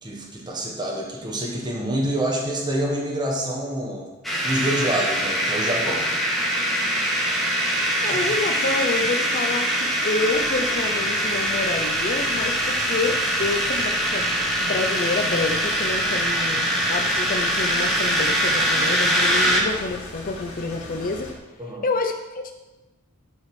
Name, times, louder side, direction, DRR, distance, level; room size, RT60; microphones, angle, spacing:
voice 1, 0.0-4.1 4.4-6.1 8.1-8.3 21.6-21.9, right 1 dB, 20° right, -2 dB, 1.4 m, -27 dB
sound 1, 4.2-19.6, equal, ahead, 1.7 m, -23 dB
voice 2, 8.0-14.2 14.6-21.3 21.8-22.5, left 3 dB, 40° left, 5 dB, 0.7 m, -28 dB
sound 2, 10.3-21.3, left 2 dB, 75° left, 2.4 m, -40 dB
11.5 x 5.5 x 6.1 m, 1.1 s
head